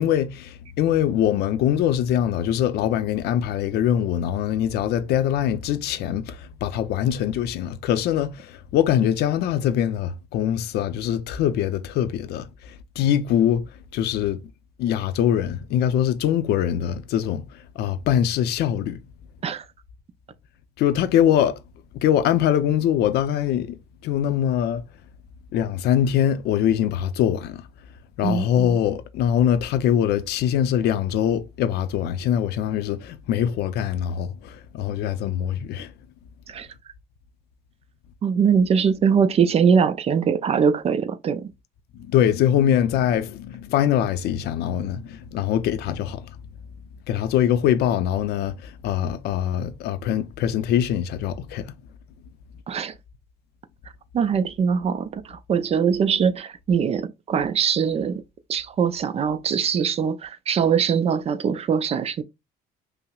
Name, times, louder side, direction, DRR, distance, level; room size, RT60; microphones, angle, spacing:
voice 1, 0.0-14.4 14.8-19.0 20.8-21.6 21.9-24.9 25.5-27.7 28.2-35.9 41.9-46.4 47.1-51.8, left 10 dB, 75° left, 0.5 m, -23 dB
voice 2, 38.2-41.5 52.7-52.9 54.1-58.2 58.5-62.2, right 6 dB, 40° right, 0.4 m, -22 dB
5.5 x 2.0 x 2.2 m
cardioid pair, 110°, 17 cm